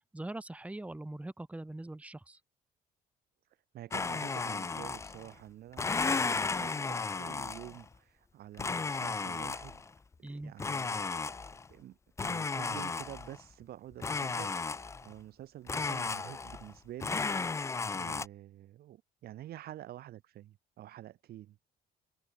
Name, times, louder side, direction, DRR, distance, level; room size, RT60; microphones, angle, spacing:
voice 1, 0.1-2.4 10.2-10.5, right 2 dB, 10° right, 1.7 m, -42 dB
voice 2, 3.7-9.8 10.2-11.0 11.7-14.5 15.0-17.2 17.9-21.6, right 13 dB, 65° right, 2.5 m, -48 dB
Domestic sounds home sounds, 3.9-5.3 5.7-7.8 8.6-9.9 10.6-11.7 12.2-13.4 14.0-15.1 15.7-16.7 17.0-18.3, left 4 dB, 15° left, 0.5 m, -34 dB
cardioid pair, 110°, 17 cm